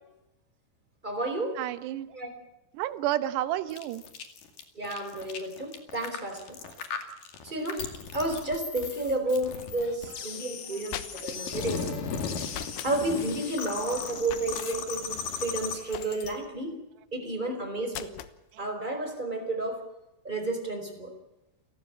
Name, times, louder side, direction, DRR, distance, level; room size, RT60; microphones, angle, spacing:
voice 1, 1.0-1.6 2.1-2.3 4.7-6.6 7.4-11.9 12.8-16.8 17.1-18.1 18.6-19.8 20.2-21.1, right 2 dB, 10° right, 4 dB, 4.3 m, -31 dB
voice 2, 1.6-2.1 2.7-4.0 17.4-17.5 18.5-18.6, right 13 dB, 75° right, 12 dB, 3.1 m, -31 dB
sound 1, 3.7-16.3, left 6 dB, 55° left, 3.6 m, -37 dB
sound 2, 10.6-11.5 12.5-12.9 14.2-14.7 15.9-16.4 17.9-18.4, left 12 dB, 70° left, 2.8 m, -40 dB
29.5 x 16.0 x 7.5 m, 0.94 s
omnidirectional pair, 5.3 m